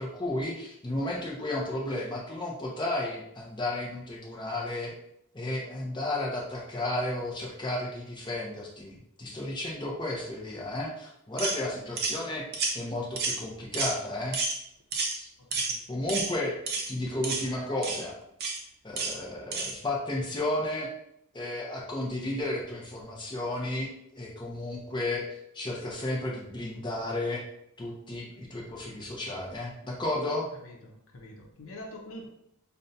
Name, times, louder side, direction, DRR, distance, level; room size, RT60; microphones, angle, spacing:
voice 1, 0.0-4.9 5.3-12.5 12.7-14.4 15.1-15.3 15.9-16.6 16.9-18.2 18.8-20.9 21.3-25.3 25.5-27.4 27.8-30.5, left 1 dB, 20° left, -2 dB, 0.6 m, -33 dB
sound 1, 11.4-11.6 12.0-12.2 12.5-12.8 13.2-13.4 13.7-13.9 14.3-14.6 14.9-15.2 15.5-15.8 16.1-16.3 16.7-16.9 17.2-17.4 17.8-18.0 18.4-18.6 19.0-19.1 19.5-19.7, right 4 dB, 45° right, 0.6 m, -30 dB
voice 2, 15.4-15.8 30.6-32.3, left 1 dB, 70° left, -1 dB, 0.7 m, -45 dB
5.2 x 2.2 x 2.6 m, 0.77 s
head